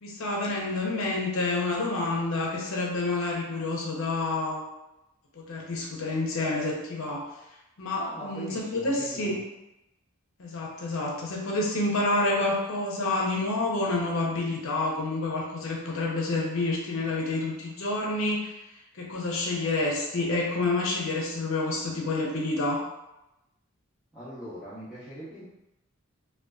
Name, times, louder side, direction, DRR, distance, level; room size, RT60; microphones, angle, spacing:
voice 1, 0.0-4.6 5.4-7.3 7.8-9.4 10.4-18.5 18.9-22.8, left 2 dB, 65° left, -2 dB, 0.6 m, -28 dB
voice 2, 8.0-9.4 24.1-25.4, equal, 5° right, -15 dB, 0.6 m, -40 dB
2.5 x 2.3 x 2.2 m, 0.95 s
head